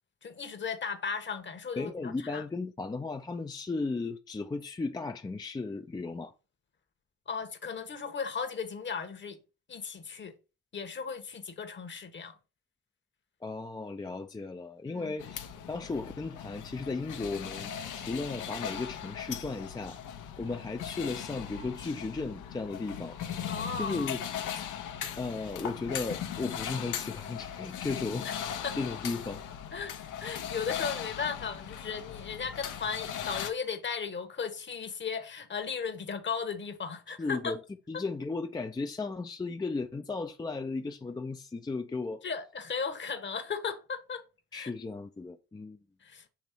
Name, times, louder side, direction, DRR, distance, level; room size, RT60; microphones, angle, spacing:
voice 1, 0.2-2.5 7.3-9.4 9.7-10.3 10.7-12.3 14.9-15.2 23.5-24.1 28.2-28.4 28.6-28.8 29.3-29.4 29.7-29.9 30.2-37.6 37.9-38.0 42.2-44.2 44.5-44.7 46.0-46.2, left 6 dB, 40° left, 1.1 m, -36 dB
voice 2, 1.8-6.3 13.4-17.7 18.0-20.0 20.4-23.2 23.8-24.2 24.6-24.7 25.2-29.4 37.2-37.6 37.9-42.2 44.5-45.8, left 3 dB, 15° left, 0.4 m, -35 dB
sound 1, 15.2-33.5, left 9 dB, 85° left, 0.9 m, -39 dB
7.0 x 3.1 x 4.5 m
cardioid pair, 90°, 30 cm